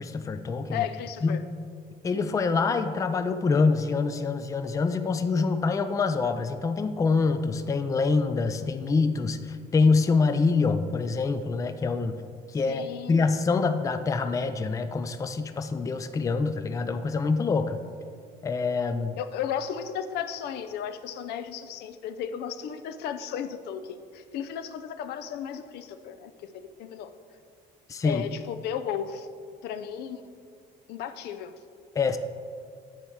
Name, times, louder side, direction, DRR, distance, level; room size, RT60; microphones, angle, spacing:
voice 1, 0.0-0.9 1.2-1.4 2.0-12.1 12.5-12.8 13.1-17.8 18.4-19.2 27.9-28.2 32.0-32.2, left 4 dB, 20° left, 9 dB, 0.4 m, -25 dB
voice 2, 0.7-1.4 12.7-13.3 19.2-27.1 28.0-29.3 29.6-30.3 30.9-31.5, left 8 dB, 75° left, 10 dB, 0.5 m, -34 dB
8.7 x 4.3 x 4.5 m, 2.1 s
cardioid pair, 110°, 17 cm